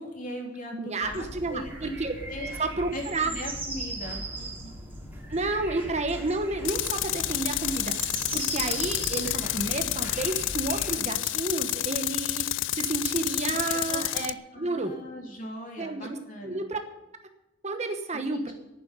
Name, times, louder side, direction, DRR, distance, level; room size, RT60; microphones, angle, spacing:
voice 1, 0.0-2.0 2.3-2.5 2.9-4.7 13.4-14.0 14.5-16.6 18.1-18.5, left 1 dB, 45° left, 0 dB, 3.5 m, -39 dB
voice 2, 0.7-2.2 2.6-3.3 5.3-14.9 15.8-16.2 16.4-16.8 17.6-18.5, right 3 dB, 35° right, 6 dB, 1.1 m, -31 dB
sound 1, 1.0-11.0, right 1 dB, 10° right, 3.5 m, -38 dB
Tools, 6.6-14.3, left 16 dB, 65° left, 0.4 m, -30 dB
11.5 x 9.4 x 8.4 m, 0.96 s
head